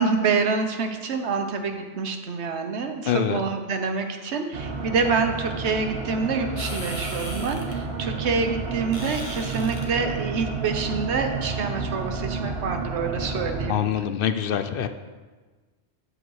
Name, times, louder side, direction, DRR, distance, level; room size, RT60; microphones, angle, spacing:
voice 1, 0.0-13.9, right 4 dB, 85° right, 5 dB, 1.2 m, -27 dB
voice 2, 3.1-3.4 13.7-14.9, left 9 dB, 60° left, 10 dB, 0.7 m, -24 dB
sound 1, 4.5-13.7, right 4 dB, 65° right, 1.2 m, -31 dB
sound 2, 6.6-12.2, left 1 dB, 30° left, 1.3 m, -41 dB
8.6 x 8.0 x 4.7 m, 1.3 s
omnidirectional pair, 1.1 m